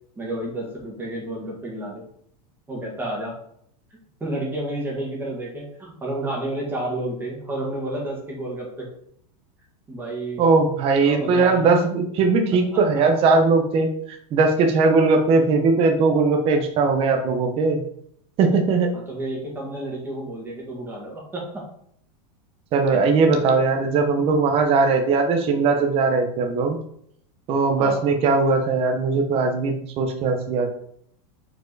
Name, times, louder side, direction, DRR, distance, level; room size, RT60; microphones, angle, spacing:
voice 1, 0.2-2.0 2.7-3.3 4.2-8.9 9.9-10.4 11.0-11.8 18.9-21.6 22.9-23.0 27.8-28.0, right 1 dB, 10° right, -2 dB, 1.6 m, -30 dB
voice 2, 10.4-17.8 18.4-18.9 22.7-26.8 27.5-30.7, right 4 dB, 30° right, 4 dB, 0.9 m, -19 dB
4.9 x 4.5 x 4.7 m, 0.68 s
supercardioid pair, 155°, 20 cm